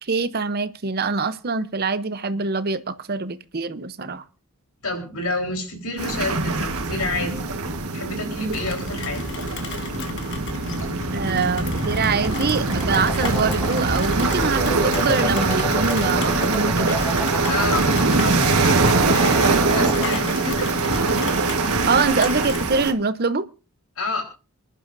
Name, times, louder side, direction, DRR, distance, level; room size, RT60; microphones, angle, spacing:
voice 1, 0.0-4.2 11.1-17.1 21.9-23.5, right 4 dB, 45° right, 0.7 m, -24 dB
voice 2, 4.8-9.3 17.5-20.7 24.0-24.2, left 2 dB, 80° left, 4.0 m, -29 dB
sound 1, 6.0-22.9, right 3 dB, 85° right, 1.4 m, -22 dB
Rain, 8.5-22.7, left 3 dB, 55° left, 1.5 m, -33 dB
sound 2, 12.1-20.5, left 1 dB, 5° left, 0.6 m, -33 dB
28.0 x 11.0 x 2.6 m
head